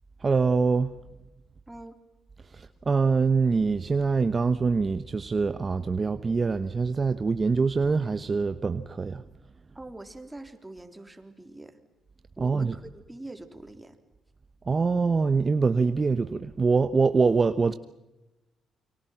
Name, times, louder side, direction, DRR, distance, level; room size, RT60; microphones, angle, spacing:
voice 1, 0.2-0.9 2.5-9.2 12.4-12.7 14.7-17.8, right 4 dB, 30° right, 1.0 m, -24 dB
voice 2, 1.7-2.0 9.7-11.8 12.4-14.0, right 2 dB, 10° right, 3.6 m, -44 dB
29.5 x 24.5 x 5.9 m
cardioid pair, 90°, 0 cm